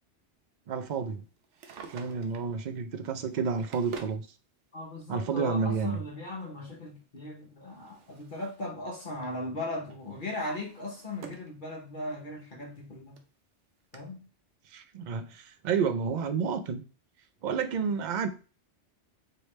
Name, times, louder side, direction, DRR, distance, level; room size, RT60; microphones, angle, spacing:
voice 1, 0.7-1.2 1.9-4.3 5.1-6.0 14.7-16.8 17.4-18.3, right 6 dB, 55° right, 0.5 m, -30 dB
Drawer open or close, 1.4-2.5 3.3-4.2 5.3-5.4 7.2-8.7 9.0-9.4 9.9-11.6 12.0-12.1 12.8-12.9 13.2-13.3 13.9-14.0, right 6 dB, 85° right, 1.0 m, -47 dB
voice 2, 4.7-13.2 13.9-14.2, left 2 dB, 45° left, 1.0 m, -38 dB
4.6 x 3.2 x 3.1 m
omnidirectional pair, 1.2 m